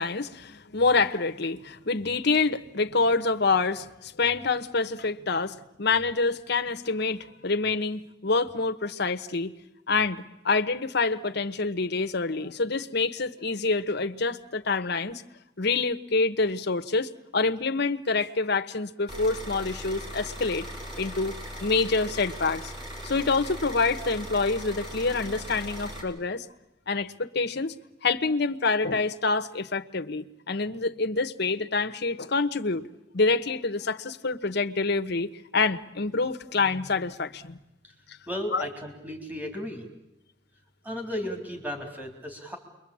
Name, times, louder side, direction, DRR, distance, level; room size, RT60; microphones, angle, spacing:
voice 1, 0.0-9.5 9.9-15.2 15.6-20.7 21.0-21.3 21.6-22.7 23.0-26.4 26.9-27.7 28.0-32.9 33.1-37.6 38.5-38.7, left 3 dB, 60° left, 1.2 m, -27 dB
sound 1, 19.1-26.0, equal, 25° right, 6.9 m, -39 dB
voice 2, 38.3-39.9 40.8-42.6, equal, 10° right, 3.8 m, -34 dB
29.0 x 23.0 x 8.7 m
head